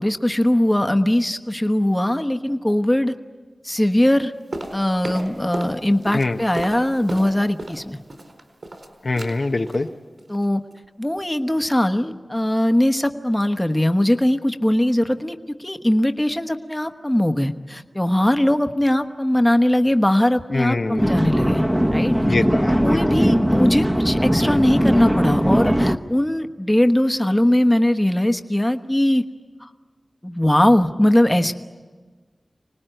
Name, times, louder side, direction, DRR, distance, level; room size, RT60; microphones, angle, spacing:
voice 1, 0.0-3.1 3.6-4.3 4.7-8.0 10.3-10.6 11.0-21.6 21.9-22.2 22.8-29.2 29.6-29.7 30.2-31.5, left 1 dB, 15° left, 7 dB, 1.1 m, -20 dB
sound 1, 4.5-5.8 6.0-7.8 8.1-8.9 9.2-9.4 9.7-9.9 10.2-10.4 10.7-10.8, right 1 dB, 70° right, 4.3 m, -33 dB
voice 2, 9.0-9.9 20.5-21.3 22.2-23.3, left 3 dB, 65° left, 5 dB, 0.9 m, -24 dB
sound 2, 21.0-26.0, equal, 10° right, 1.1 m, -19 dB
26.0 x 19.5 x 9.1 m, 1.4 s
wide cardioid pair, 55°, 0 cm